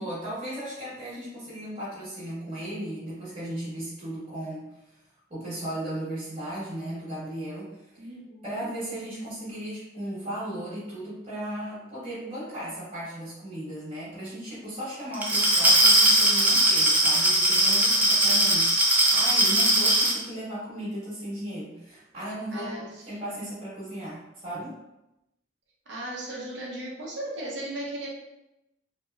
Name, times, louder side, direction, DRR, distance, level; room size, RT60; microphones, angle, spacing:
voice 1, 0.0-4.6 5.3-7.7 8.4-24.7, right 1 dB, 35° right, -11 dB, 1.3 m, -36 dB
voice 2, 8.0-8.7 15.5-15.7 22.5-23.2 25.9-28.1, right 1 dB, 80° right, -4 dB, 0.9 m, -37 dB
Glass, 15.1-20.2, right 1 dB, 10° right, 0.4 m, -20 dB
3.1 x 2.9 x 2.3 m, 0.90 s
head